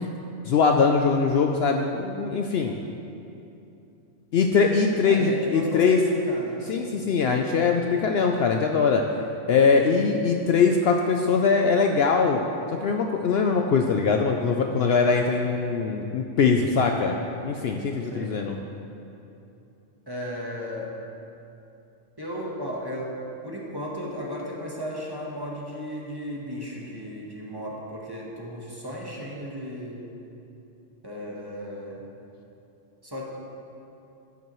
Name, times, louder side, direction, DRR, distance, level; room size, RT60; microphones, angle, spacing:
voice 1, 0.4-2.8 4.3-6.0 6.7-9.0 9.5-12.4 12.8-17.2 17.4-18.6, left 5 dB, 65° left, 3 dB, 0.7 m, -22 dB
voice 2, 5.0-6.7 18.0-18.3 20.1-20.9 22.2-23.1 23.4-30.0 31.0-32.0 33.0-33.2, equal, 20° right, -3 dB, 1.2 m, -35 dB
12.0 x 9.4 x 3.1 m, 2.8 s
omnidirectional pair, 1.3 m